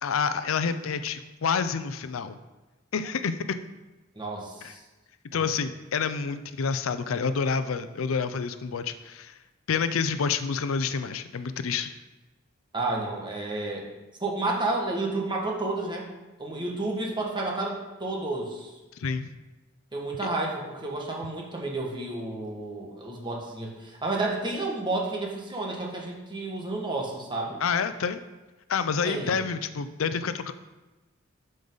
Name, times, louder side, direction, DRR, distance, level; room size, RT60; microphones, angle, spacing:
voice 1, 0.0-2.4 2.9-3.6 4.6-4.7 5.3-9.4 9.7-11.9 19.0-19.3 27.6-28.2 28.7-30.5, left 5 dB, 80° left, 11 dB, 0.5 m, -28 dB
voice 2, 4.2-4.8 5.3-5.5 12.7-13.9 14.2-16.1 16.4-18.7 19.9-27.6 29.0-29.4, right 2 dB, 25° right, -1 dB, 1.7 m, -31 dB
12.5 x 5.3 x 4.0 m, 1.1 s
head